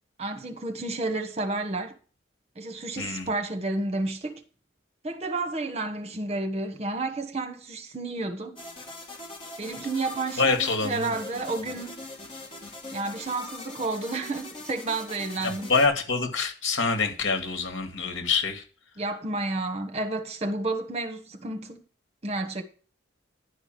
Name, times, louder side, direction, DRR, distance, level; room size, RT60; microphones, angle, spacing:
voice 1, 0.2-2.0 2.5-4.4 5.0-8.6 9.6-12.0 12.9-15.7 19.0-21.8 22.2-22.6, right 2 dB, 30° right, 1.3 m, -31 dB
voice 2, 3.0-3.3 10.4-11.1 15.4-18.6, left 4 dB, 85° left, 2.2 m, -26 dB
sound 1, 8.6-15.9, left 2 dB, 25° left, 3.0 m, -42 dB
11.0 x 5.0 x 7.6 m
head